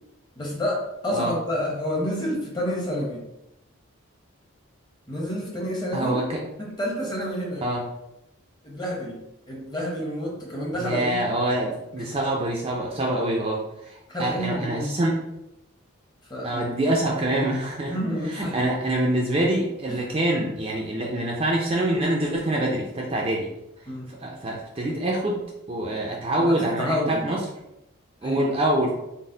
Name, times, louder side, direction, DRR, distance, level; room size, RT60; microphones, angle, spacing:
voice 1, 0.4-3.3 5.1-6.2 6.6-7.6 8.6-11.4 11.6-11.7 12.0-12.1 14.1-15.0 16.3-16.7 17.9-18.6 19.9-20.1 23.9-24.1 26.3-27.2 28.2-28.5, equal, 20° left, -2 dB, 0.8 m, -29 dB
voice 2, 5.9-6.4 7.6-7.8 10.8-15.2 16.4-18.0 18.3-23.5 24.1-25.4 25.7-27.4 28.2-28.9, right 1 dB, 25° right, -2 dB, 0.4 m, -25 dB
4.0 x 2.0 x 3.7 m, 0.88 s
head